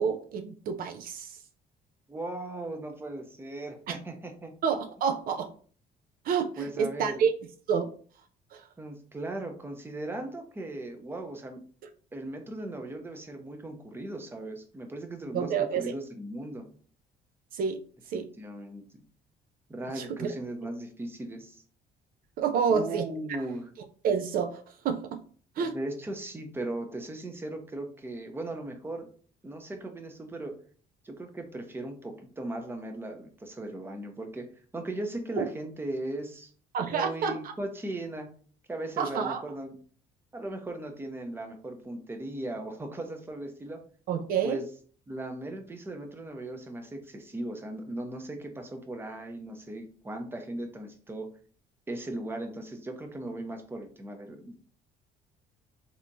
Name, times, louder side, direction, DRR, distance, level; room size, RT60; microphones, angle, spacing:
voice 1, 0.0-1.4 3.9-4.0 4.6-5.5 6.2-7.3 7.7-7.9 8.5-8.7 15.3-15.9 17.5-17.8 18.1-18.3 19.9-20.3 22.4-23.1 24.0-25.2 25.6-25.8 35.4-35.5 36.7-37.5 39.0-39.4 44.1-44.7, right 6 dB, 60° right, 7 dB, 0.4 m, -28 dB
voice 2, 2.1-4.5 6.6-7.1 8.8-11.6 12.1-16.7 18.1-18.8 19.7-21.6 22.7-23.7 25.7-29.1 29.4-30.6 31.0-34.5 34.7-36.5 36.8-38.3 38.7-39.8 40.3-43.8 44.4-44.6 45.1-51.3 51.9-54.5, right 1 dB, 15° right, 5 dB, 0.6 m, -38 dB
3.3 x 2.8 x 2.6 m, 0.43 s
cardioid pair, 110°, 17 cm